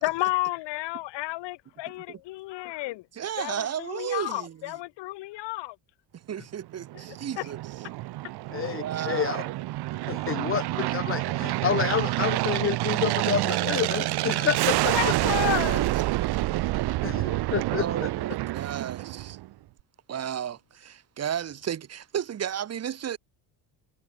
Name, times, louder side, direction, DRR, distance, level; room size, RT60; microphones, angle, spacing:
voice 1, 0.0-3.1 3.4-5.8 6.9-7.0 7.4-7.5 8.5-8.8 14.9-15.9 16.2-16.3, left 19 dB, 75° left, 4.9 m, -31 dB
voice 2, 3.1-4.5 6.1-7.6 8.7-9.5 15.1-16.0 17.6-19.4 20.1-23.2, right 9 dB, 35° right, 3.0 m, -33 dB
Aircraft, 6.8-19.5, right 18 dB, 65° right, 1.4 m, -28 dB
voice 3, 8.5-9.4 10.1-14.9 17.0-18.1, left 8 dB, 30° left, 1.2 m, -29 dB
cardioid pair, 160°, 42 cm